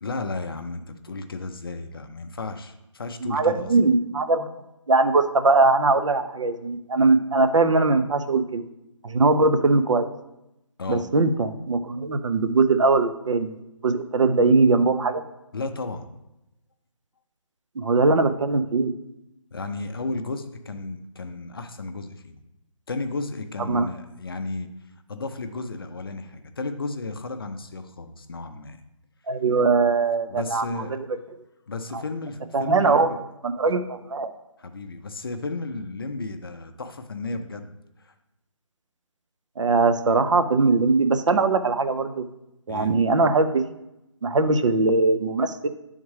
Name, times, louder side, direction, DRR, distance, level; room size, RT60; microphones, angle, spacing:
voice 1, 0.0-3.7 10.8-11.1 15.5-16.1 19.5-22.4 22.9-24.7 25.1-28.8 30.3-31.0 31.7-33.2 33.7-33.8 34.6-38.1 42.7-43.0, left 3 dB, 45° left, 7 dB, 0.4 m, -33 dB
voice 2, 3.2-4.5 4.9-8.6 9.0-10.1 10.9-13.5 13.8-15.2 17.8-18.9 23.7-23.9 29.3-30.6 30.9-31.1 31.9-32.0 32.5-33.1 33.4-34.3 39.6-42.2 42.7-43.6 44.2-45.7, right 3 dB, 65° right, 9 dB, 0.5 m, -21 dB
9.2 x 3.6 x 3.2 m, 0.90 s
hypercardioid pair, 170°, 17 cm